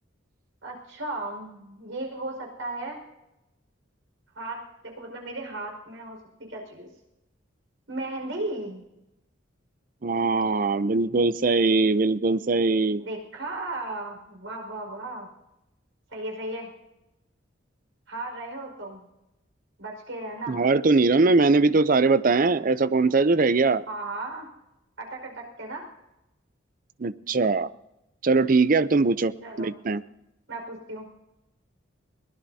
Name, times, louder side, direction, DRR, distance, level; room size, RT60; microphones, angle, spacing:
voice 1, 0.6-3.0 4.3-6.2 6.5-6.9 7.9-8.8 13.0-15.3 16.1-16.7 18.1-19.1 19.8-20.6 23.9-24.5 25.0-25.9 29.4-29.7 30.5-31.1, right 2 dB, 85° right, 1 dB, 5.1 m, -35 dB
voice 2, 10.0-13.0 20.5-23.8 27.0-27.7 28.2-30.0, right 3 dB, 45° right, 15 dB, 0.5 m, -21 dB
22.0 x 18.5 x 2.8 m, 0.92 s
head